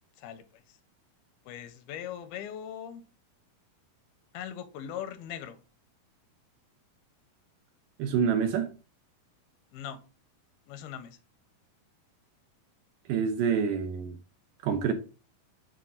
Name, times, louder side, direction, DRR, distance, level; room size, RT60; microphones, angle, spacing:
voice 1, 0.2-0.8 1.5-3.0 4.3-5.6 9.7-10.0 10.7-11.2, left 9 dB, 85° left, 2.6 m, -40 dB
voice 2, 8.0-8.7 13.1-14.2 14.6-14.9, right 7 dB, 75° right, 2.1 m, -27 dB
7.5 x 2.6 x 5.4 m
omnidirectional pair, 4.3 m